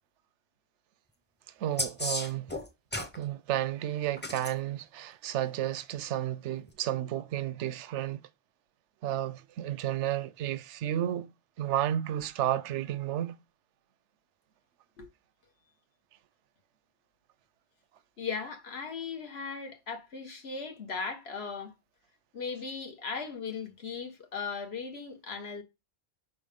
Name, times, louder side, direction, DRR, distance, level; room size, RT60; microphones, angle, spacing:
voice 1, 1.6-2.5 3.2-8.2 9.0-11.3 11.6-13.4, right 12 dB, 85° right, 0.9 m, -32 dB
sound 1, 1.8-3.2 4.2-4.5 6.7-6.8, left 1 dB, 10° left, 0.8 m, -33 dB
voice 2, 18.2-21.7 22.3-25.6, left 5 dB, 65° left, 1.5 m, -37 dB
5.6 x 3.9 x 5.1 m
omnidirectional pair, 1.2 m